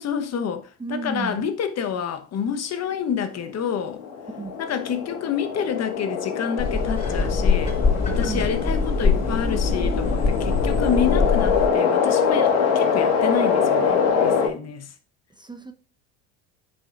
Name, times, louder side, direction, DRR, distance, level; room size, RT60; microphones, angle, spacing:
voice 1, 0.0-4.0 4.6-7.8 8.1-14.9, left 7 dB, 45° left, 1.1 m, -28 dB
voice 2, 0.8-1.5 4.4-4.6 8.2-8.5 15.4-15.7, right 3 dB, 10° right, 0.7 m, -32 dB
sound 1, 3.7-14.5, left 6 dB, 70° left, 1.7 m, -24 dB
sound 2, 6.6-11.7, left 4 dB, 20° left, 4.0 m, -23 dB
10.0 x 5.2 x 2.5 m
hypercardioid pair, 70°, 38 cm